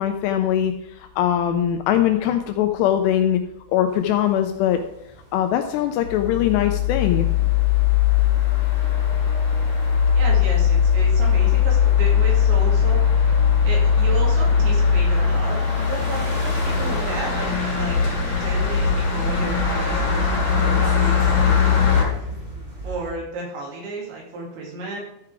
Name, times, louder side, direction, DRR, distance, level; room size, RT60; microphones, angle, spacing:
voice 1, 0.0-3.4 3.7-4.8 5.3-7.3, left 10 dB, 80° left, 6 dB, 2.5 m, -21 dB
sound 1, 3.9-23.1, right 1 dB, 45° right, 0.7 m, -37 dB
sound 2, 6.0-22.0, left 7 dB, 45° left, 4.5 m, -19 dB
voice 2, 10.1-13.1 13.6-22.3 22.8-25.0, right 3 dB, 75° right, -2 dB, 4.7 m, -33 dB
13.0 x 4.8 x 4.8 m, 0.80 s
omnidirectional pair, 5.3 m